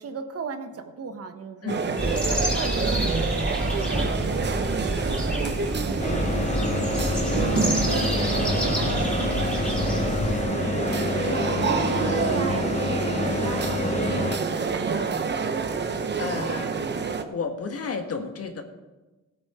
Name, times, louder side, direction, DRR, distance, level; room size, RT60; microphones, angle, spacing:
voice 1, 0.0-7.5 7.8-15.2, right 5 dB, 50° right, 7 dB, 1.3 m, -36 dB
Colombian Airport Food Court Quad, 1.7-17.2, right 5 dB, 35° right, 1.0 m, -28 dB
sound 1, 2.0-10.4, equal, 5° left, 2.7 m, -28 dB
sound 2, 6.0-14.4, left 3 dB, 25° left, 1.1 m, -28 dB
voice 2, 15.8-16.8 17.3-18.6, left 5 dB, 50° left, 5 dB, 1.6 m, -33 dB
16.5 x 8.8 x 4.4 m, 1.1 s
cardioid pair, 90°, 30 cm